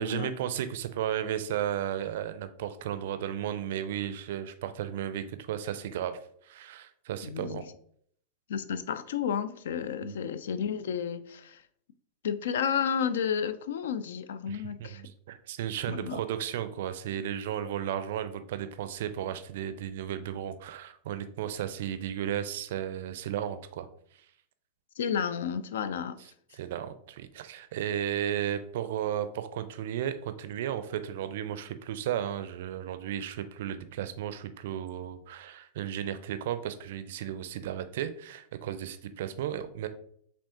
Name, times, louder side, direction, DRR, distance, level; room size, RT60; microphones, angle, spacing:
voice 1, 0.0-7.7 10.0-10.2 14.5-23.9 26.5-39.9, right 10 dB, 55° right, 0.4 m, -34 dB
voice 2, 7.2-7.6 8.5-11.6 12.2-15.0 15.9-16.2 25.0-26.2, left 7 dB, 60° left, 0.3 m, -31 dB
5.2 x 3.4 x 2.8 m
figure-of-eight pair, 90°, 0 cm